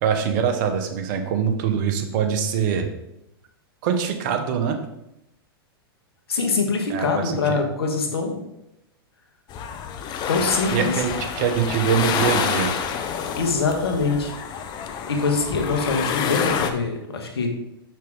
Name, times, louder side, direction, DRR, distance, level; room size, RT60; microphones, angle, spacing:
voice 1, 0.0-2.9 3.8-4.8 6.9-7.6 10.7-12.7, right 7 dB, 50° right, 6 dB, 1.1 m, -23 dB
voice 2, 6.3-8.4 10.3-11.0 13.3-14.3 15.1-17.5, left 4 dB, 80° left, 3 dB, 1.4 m, -24 dB
sound 1, 9.5-16.7, left 7 dB, 35° left, 0.7 m, -28 dB
6.0 x 5.7 x 3.7 m, 0.85 s
hypercardioid pair, 110°, 13 cm